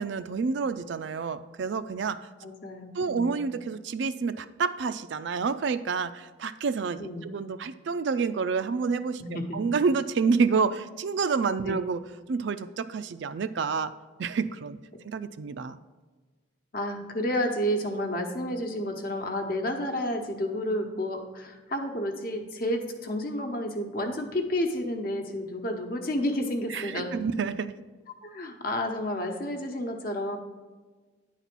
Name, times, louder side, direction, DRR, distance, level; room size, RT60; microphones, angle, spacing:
voice 1, 0.0-2.2 2.9-9.2 9.5-12.0 12.3-13.9 14.2-14.8 15.0-15.8 26.7-27.7, right 5 dB, 65° right, 12 dB, 0.4 m, -28 dB
voice 2, 2.4-3.3 7.0-7.3 9.2-9.6 11.6-11.8 16.7-27.2 28.2-30.4, left 1 dB, 45° left, 4 dB, 1.0 m, -31 dB
9.9 x 4.1 x 6.0 m, 1.3 s
head